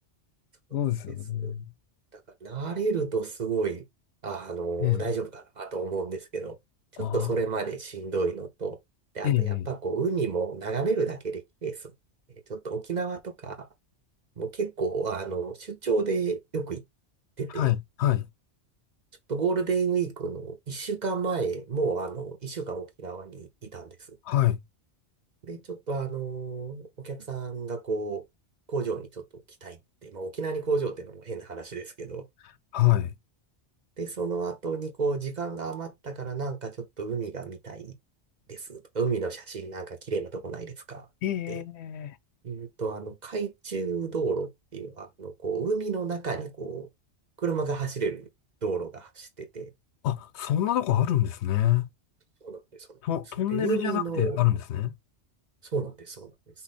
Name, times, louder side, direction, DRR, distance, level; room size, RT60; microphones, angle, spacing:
voice 1, 0.7-1.7 4.8-5.0 7.0-7.3 9.2-9.7 17.5-18.3 24.2-24.6 32.7-33.1 41.2-42.2 50.0-51.9 53.0-54.9, left 13 dB, 75° left, 0.8 m, -26 dB
voice 2, 2.1-3.8 4.2-6.6 7.0-8.8 9.1-11.9 12.5-13.7 14.4-16.8 17.4-17.7 19.3-23.9 25.4-28.2 28.7-32.3 34.0-37.9 38.5-41.1 41.5-41.6 42.4-46.9 47.4-48.3 48.6-49.7 52.4-52.6 53.5-54.4 55.7-56.3, right 4 dB, 45° right, 0.9 m, -31 dB
5.7 x 2.1 x 4.1 m
omnidirectional pair, 1.2 m